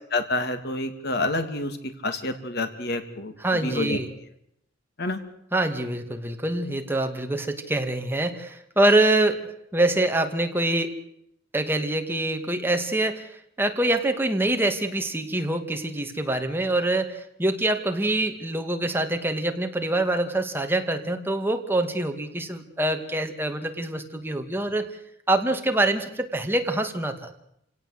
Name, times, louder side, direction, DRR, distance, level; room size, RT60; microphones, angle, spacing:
voice 1, 0.1-1.8 2.0-4.0 5.0-5.2, left 2 dB, 60° left, 8 dB, 2.9 m, -28 dB
voice 2, 3.4-4.1 5.5-9.5 9.7-10.9 11.5-13.3 13.6-24.9 25.3-27.3, right 2 dB, 10° right, 5 dB, 2.4 m, -25 dB
28.0 x 17.5 x 8.2 m, 0.75 s
head